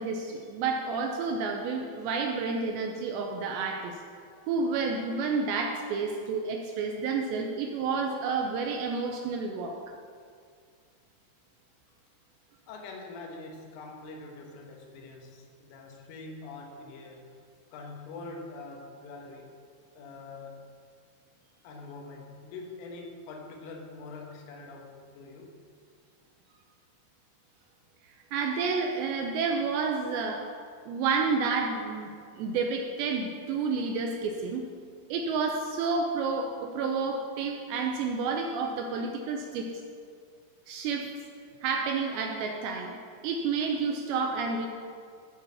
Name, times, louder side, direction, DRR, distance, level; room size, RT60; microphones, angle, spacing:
voice 1, 0.0-4.0 4.5-9.8 28.3-30.5 30.9-32.1 32.4-34.7 35.1-39.7 40.7-41.1 41.6-43.0 43.2-44.7, right 4 dB, 85° right, 2 dB, 2.6 m, -30 dB
voice 2, 12.7-17.3 17.7-19.6 20.0-20.7 21.6-25.6, left 3 dB, 85° left, 1 dB, 3.9 m, -44 dB
14.0 x 4.8 x 7.2 m, 2.2 s
omnidirectional pair, 5.6 m